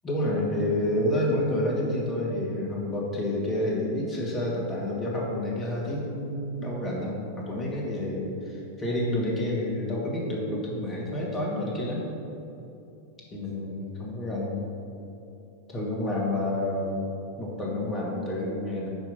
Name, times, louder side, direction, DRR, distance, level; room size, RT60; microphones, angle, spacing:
voice 1, 0.0-12.0 13.3-14.6 15.7-18.9, left 1 dB, 20° left, -3 dB, 1.5 m, -29 dB
5.3 x 4.6 x 5.5 m, 2.8 s
figure-of-eight pair, 90°, 0 cm